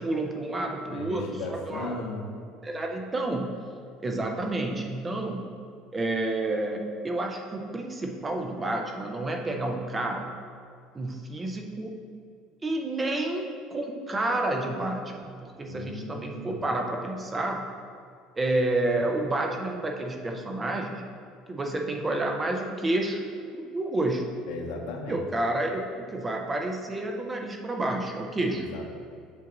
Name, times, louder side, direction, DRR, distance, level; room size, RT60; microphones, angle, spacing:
voice 1, 0.0-2.1 2.6-3.6 4.0-5.5 5.9-10.3 10.9-11.9 12.6-13.4 13.7-17.6 18.4-21.0 21.5-23.2 23.5-24.3 25.1-28.7, right 2 dB, 15° right, 2 dB, 0.6 m, -29 dB
voice 2, 0.9-2.3 15.6-16.6 24.5-25.2 28.5-28.9, left 2 dB, 75° left, 2 dB, 0.9 m, -36 dB
7.6 x 2.6 x 5.8 m, 2.3 s
cardioid pair, 145°, 0 cm